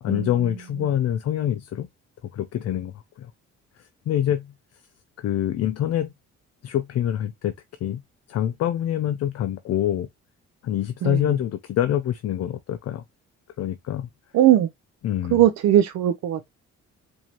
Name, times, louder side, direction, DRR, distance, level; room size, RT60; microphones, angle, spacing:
voice 1, 0.0-1.9 2.3-3.3 3.8-4.5 5.2-6.1 6.6-7.5 7.8-8.0 8.3-10.1 10.6-13.0 13.6-14.1 15.0-15.4, left 11 dB, 55° left, 0.5 m, -25 dB
voice 2, 14.3-14.7 15.3-16.5, right 12 dB, 65° right, 0.5 m, -19 dB
4.5 x 2.7 x 2.8 m
cardioid pair, 90°, 30 cm